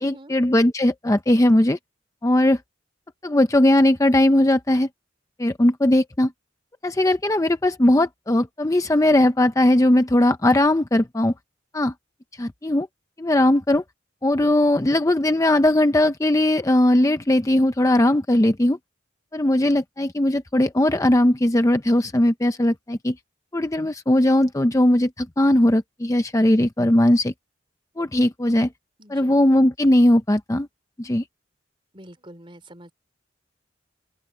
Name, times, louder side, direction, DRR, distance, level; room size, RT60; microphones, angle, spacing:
voice 1, 0.0-1.8 2.2-2.6 3.2-4.9 5.4-6.3 6.8-11.3 11.7-11.9 12.4-12.9 13.2-13.8 14.2-18.8 19.3-23.2 23.5-27.3 28.0-28.7 29.1-30.7 31.0-31.2, left 1 dB, 15° left, 0.6 m, -19 dB
voice 2, 29.0-29.3 31.9-32.9, right 1 dB, 25° right, 3.3 m, -45 dB
open air
head